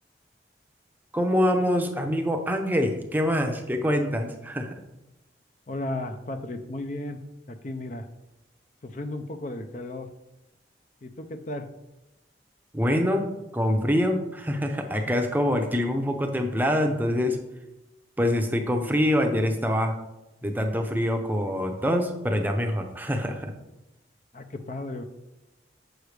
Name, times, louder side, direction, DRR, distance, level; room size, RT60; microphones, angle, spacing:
voice 1, 1.1-4.7 12.7-17.4 18.2-20.0 20.4-23.5, equal, 10° right, 4 dB, 0.6 m, -25 dB
voice 2, 5.7-7.2 7.5-8.1 8.8-10.1 11.0-11.7 14.9-15.1 24.3-25.0, left 1 dB, 40° left, 7 dB, 0.5 m, -34 dB
7.7 x 6.4 x 3.3 m, 0.96 s
head